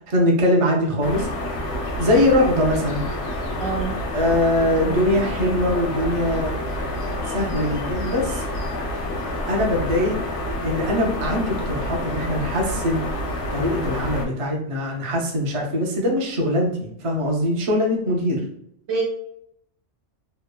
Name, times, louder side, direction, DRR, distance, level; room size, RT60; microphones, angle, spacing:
voice 1, 0.1-1.3 2.0-3.0 4.1-6.5 7.3-8.4 9.5-10.2 10.6-13.1 13.5-18.4, left 1 dB, 45° right, 0 dB, 0.4 m, -22 dB
sound 1, 1.0-14.2, left 1 dB, 85° left, 1.0 m, -28 dB
voice 2, 3.6-4.0 4.8-4.9 18.9-19.0, right 4 dB, 85° right, -2 dB, 1.2 m, -26 dB
3.1 x 2.0 x 2.2 m, 0.71 s
omnidirectional pair, 1.2 m